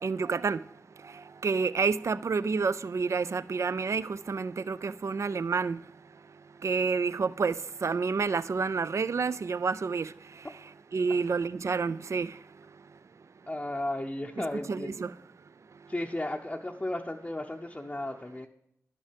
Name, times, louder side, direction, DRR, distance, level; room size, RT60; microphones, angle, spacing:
voice 1, 0.0-0.6 1.4-5.8 6.6-10.1 10.9-12.3 14.4-15.1, right 5 dB, 55° right, 0.3 m, -29 dB
voice 2, 13.5-15.0 15.9-18.5, left 1 dB, 20° left, 0.6 m, -34 dB
11.0 x 5.4 x 5.1 m
cardioid pair, 45°, 6 cm